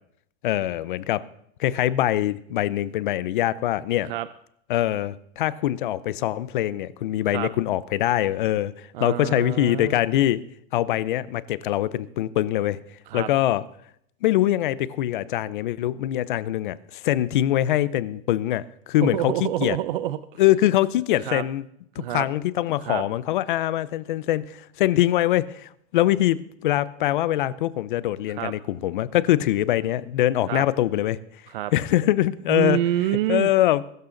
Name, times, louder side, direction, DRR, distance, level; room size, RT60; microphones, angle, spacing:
voice 1, 0.4-1.2 1.6-4.1 4.7-8.7 9.0-10.4 10.7-12.8 13.1-13.6 14.2-19.8 20.4-21.6 22.1-31.2 31.7-32.8 33.3-33.8, left 13 dB, 45° left, 18 dB, 0.7 m, -23 dB
voice 2, 8.9-10.0 13.1-13.3 19.0-20.4 21.2-21.4 22.0-22.3 22.8-23.0 28.3-28.5 30.5-30.6 31.5-31.7 32.5-33.5, right 13 dB, 50° right, 14 dB, 0.6 m, -27 dB
21.5 x 12.5 x 3.9 m, 0.69 s
supercardioid pair, 180°, 36 cm